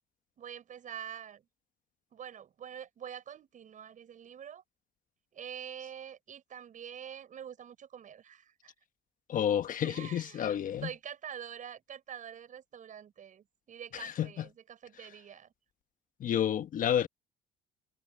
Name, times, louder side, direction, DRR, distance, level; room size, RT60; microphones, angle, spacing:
voice 1, 0.4-1.5 2.1-4.6 5.3-8.7 9.8-15.5, right 9 dB, 50° right, 7.1 m, -46 dB
voice 2, 9.3-10.9 13.9-14.4 16.2-17.1, left 10 dB, 50° left, 1.2 m, -30 dB
cardioid pair, 110°, 17 cm